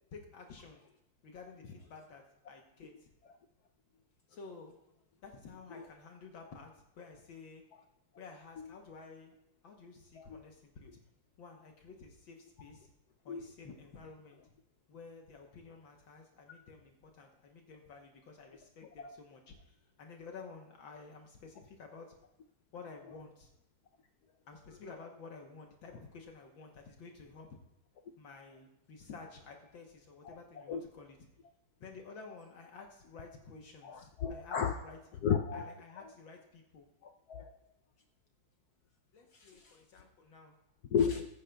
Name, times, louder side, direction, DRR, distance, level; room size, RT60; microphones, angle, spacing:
voice 1, 0.1-0.8 1.2-3.1 4.3-4.7 5.2-7.6 8.2-9.4 9.6-11.0 11.4-12.9 13.3-14.5 14.9-22.1 22.7-23.5 24.5-27.6 28.2-31.2 31.8-35.0 35.5-36.9 39.1-40.6, left 4 dB, 65° left, 2 dB, 1.7 m, -52 dB
voice 2, 30.2-30.8 33.8-34.8 35.2-35.7 37.0-37.5 39.3-39.8 40.9-41.3, left 7 dB, 90° left, 5 dB, 0.8 m, -34 dB
20.5 x 9.7 x 2.3 m, 0.88 s
omnidirectional pair, 2.4 m